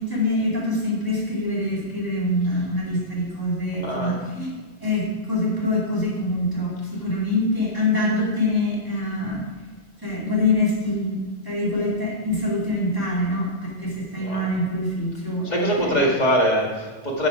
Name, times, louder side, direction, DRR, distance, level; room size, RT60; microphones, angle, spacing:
voice 1, 0.0-9.7 10.0-11.2 11.4-16.1, left 1 dB, 20° right, -4 dB, 2.6 m, -25 dB
voice 2, 3.8-4.2 14.2-14.5 15.4-17.3, equal, 40° left, -2 dB, 2.0 m, -22 dB
10.5 x 6.5 x 4.9 m, 1.3 s
omnidirectional pair, 1.1 m